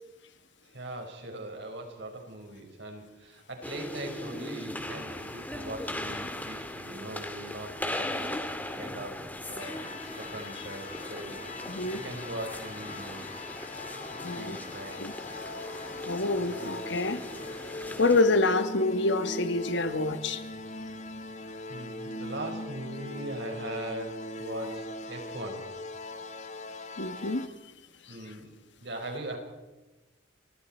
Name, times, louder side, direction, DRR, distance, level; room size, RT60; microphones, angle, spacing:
voice 1, 0.6-8.4 8.8-9.2 9.5-11.7 12.0-13.6 14.1-15.0 21.7-25.7 28.1-29.4, right 1 dB, 60° right, 5.2 m, -40 dB
sound 1, 3.6-18.2, left 1 dB, 10° left, 1.9 m, -39 dB
sound 2, 9.6-27.5, left 1 dB, 35° left, 1.3 m, -40 dB
voice 2, 11.7-12.0 14.2-14.6 15.0-15.1 16.1-17.2 18.0-20.4 27.0-27.5, left 2 dB, 60° left, 1.4 m, -27 dB
29.5 x 25.0 x 4.4 m
head